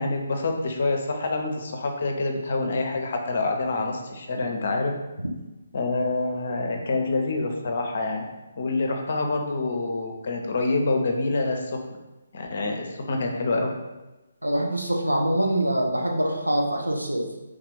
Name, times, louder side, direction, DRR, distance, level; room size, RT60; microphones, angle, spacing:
voice 1, 0.0-4.9 5.7-8.2 8.6-11.7 12.3-13.7, left 3 dB, 50° left, 3 dB, 0.6 m, -26 dB
voice 2, 14.4-17.3, right 1 dB, 85° right, 1 dB, 0.6 m, -24 dB
3.3 x 2.4 x 3.7 m, 1.1 s
figure-of-eight pair, 140°, 0 cm